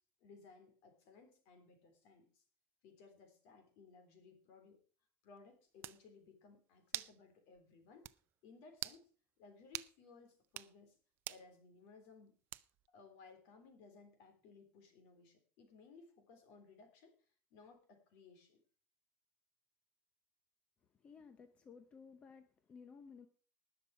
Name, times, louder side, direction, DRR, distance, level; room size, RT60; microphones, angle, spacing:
voice 1, 0.2-2.4 2.8-4.8 5.2-8.1 8.4-9.1 9.4-11.0 11.3-12.3 12.9-17.1 17.5-18.6, left 4 dB, 60° left, 6 dB, 3.7 m, -61 dB
sound 1, 5.4-5.5 5.8-6.0 6.9-7.2 7.6-7.7 8.0-8.2 8.7-9.0 9.7-9.9 10.4-10.7 11.3-11.5 12.5-12.9, right 15 dB, 40° right, 0.5 m, -44 dB
voice 2, 21.0-23.3, left 5 dB, 20° left, 9 dB, 0.8 m, -57 dB
19.5 x 6.7 x 4.9 m, 0.40 s
cardioid pair, 175°, 5 cm